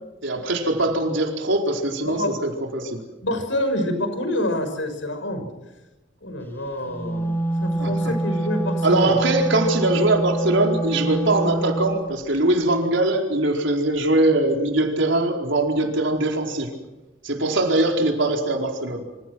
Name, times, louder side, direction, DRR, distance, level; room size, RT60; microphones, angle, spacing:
voice 1, 0.2-3.0 7.8-7.9 8.8-16.7 17.2-19.0, right 2 dB, 75° right, 2 dB, 4.6 m, -22 dB
voice 2, 2.0-2.3 3.2-5.4 6.2-7.3 7.6-9.1, left 1 dB, 75° left, 8 dB, 6.1 m, -27 dB
Wind instrument woodwind instrument, 6.9-12.0, right 2 dB, 10° left, 2.9 m, -25 dB
27.5 x 26.5 x 6.2 m, 1.0 s
head